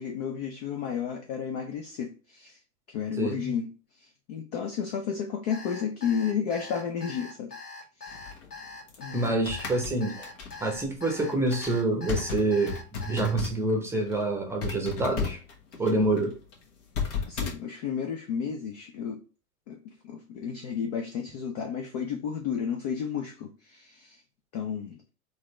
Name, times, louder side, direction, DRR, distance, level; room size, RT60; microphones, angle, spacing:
voice 1, 0.0-2.6 2.9-3.7 4.0-7.5 8.0-8.2 9.0-9.2 17.3-19.2 19.7-24.2 24.5-25.0, left 7 dB, 30° left, 0.4 m, -32 dB
voice 2, 3.2-3.5 9.1-10.3 10.6-15.4 15.8-16.4, right 2 dB, 5° right, 0.8 m, -27 dB
Alarm, 5.5-13.3, left 3 dB, 85° left, 1.2 m, -43 dB
sound 1, 8.1-13.7 14.0-14.2 14.6-17.5, left 5 dB, 55° left, 1.4 m, -35 dB
3.9 x 2.6 x 3.0 m
figure-of-eight pair, 100°, 44 cm